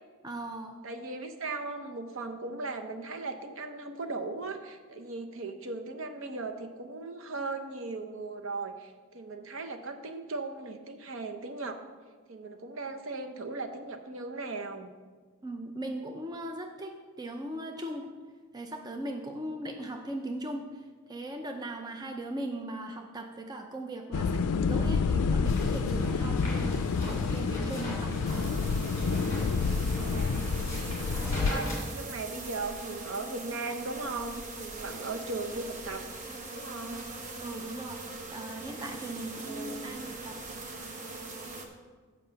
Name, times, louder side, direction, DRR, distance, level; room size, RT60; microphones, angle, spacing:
voice 1, 0.2-0.8 15.4-18.1 18.5-28.1 37.4-38.0 38.3-40.4, right 1 dB, 20° right, 3 dB, 0.5 m, -39 dB
voice 2, 0.8-11.8 12.3-14.9 29.5-30.4 31.5-36.0 36.5-37.1 39.3-40.0, right 3 dB, 60° right, 6 dB, 0.7 m, -38 dB
sound 1, 24.1-31.5, left 5 dB, 85° left, 0.4 m, -29 dB
sound 2, 25.4-31.8, equal, 15° left, 2.2 m, -37 dB
sound 3, 28.3-41.7, right 3 dB, 35° right, 0.9 m, -41 dB
7.6 x 5.1 x 6.8 m, 1.5 s
head